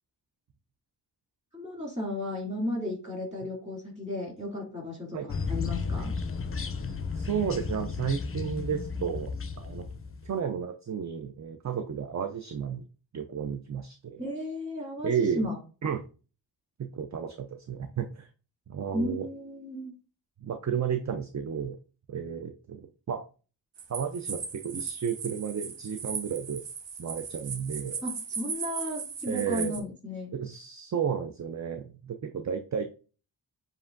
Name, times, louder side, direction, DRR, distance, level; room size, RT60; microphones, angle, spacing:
voice 1, 1.5-6.1 14.2-15.6 18.9-19.9 28.0-30.3, left 1 dB, 15° right, -3 dB, 2.3 m, -34 dB
sound 1, 5.3-10.3, left 4 dB, 30° left, 0.5 m, -33 dB
voice 2, 7.1-9.3 9.6-9.8 10.2-12.8 13.1-14.2 15.0-15.5 15.8-16.0 16.8-18.3 18.7-19.3 20.4-21.8 22.1-23.2 23.9-26.6 27.0-28.0 29.3-29.8 30.3-32.8, right 7 dB, 40° right, 6 dB, 0.4 m, -32 dB
sound 2, 23.8-29.8, right 5 dB, 70° right, 0.8 m, -37 dB
7.1 x 2.5 x 2.5 m, 0.36 s
wide cardioid pair, 75°, 45 cm